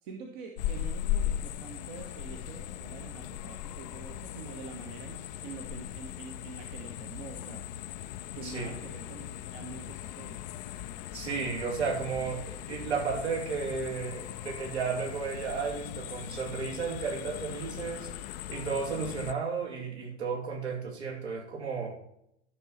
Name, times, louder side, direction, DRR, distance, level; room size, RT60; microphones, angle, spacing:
voice 1, 0.0-7.7 8.3-10.4, right 4 dB, 45° right, 2 dB, 1.4 m, -46 dB
sound 1, 0.6-19.3, left 11 dB, 35° left, 0.6 m, -38 dB
voice 2, 8.4-8.8 11.1-18.1 18.5-22.0, right 5 dB, 65° right, 0 dB, 2.9 m, -33 dB
12.5 x 5.8 x 4.2 m, 0.78 s
figure-of-eight pair, 95°, 35 cm